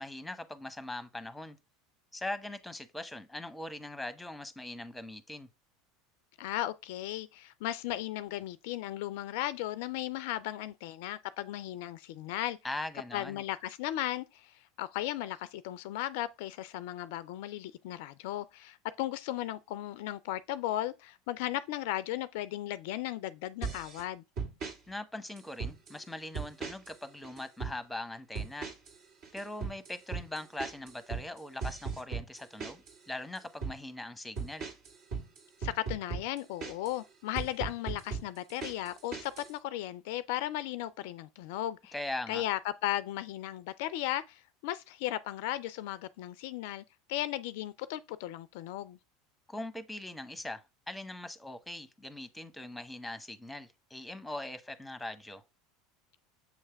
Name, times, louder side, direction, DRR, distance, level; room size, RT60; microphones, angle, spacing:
voice 1, 0.0-1.6 2.1-5.5 12.6-13.4 24.9-28.7 29.3-34.7 41.9-42.4 49.5-55.4, left 1 dB, 5° left, 0.9 m, -41 dB
voice 2, 6.4-12.6 13.1-24.2 35.6-41.9 42.3-46.8 47.1-49.0, left 14 dB, 65° left, 0.3 m, -36 dB
sound 1, 23.6-24.0 24.4-24.8 25.4-26.0 26.3-27.0 27.2-27.8 28.4-29.0 29.2-33.0 33.4-33.8 34.4-37.0 37.4-39.5, right 5 dB, 60° right, 2.3 m, -38 dB
7.3 x 3.3 x 4.5 m
hypercardioid pair, 80°, 0 cm